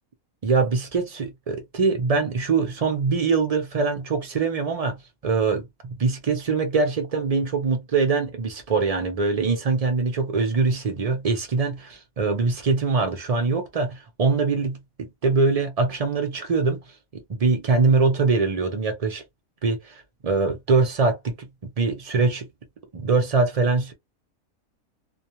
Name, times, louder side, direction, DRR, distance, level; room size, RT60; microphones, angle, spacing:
voice 1, 0.4-16.8 17.1-19.2 19.6-22.5 22.9-23.9, right 4 dB, 60° right, 0.3 m, -23 dB
2.4 x 2.2 x 2.8 m
omnidirectional pair, 1.5 m